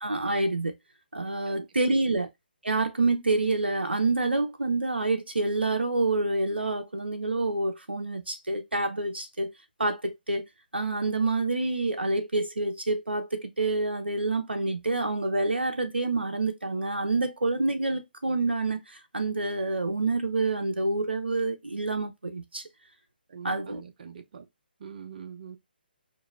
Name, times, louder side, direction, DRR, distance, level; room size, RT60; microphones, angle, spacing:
voice 1, 0.0-0.7 1.1-2.3 2.6-9.5 9.8-10.4 10.7-22.6 23.4-23.8, right 2 dB, 90° right, 0.6 m, -27 dB
voice 2, 23.3-24.5 24.8-25.6, right 7 dB, 50° right, 0.8 m, -43 dB
4.7 x 2.6 x 2.2 m
figure-of-eight pair, 135°, 6 cm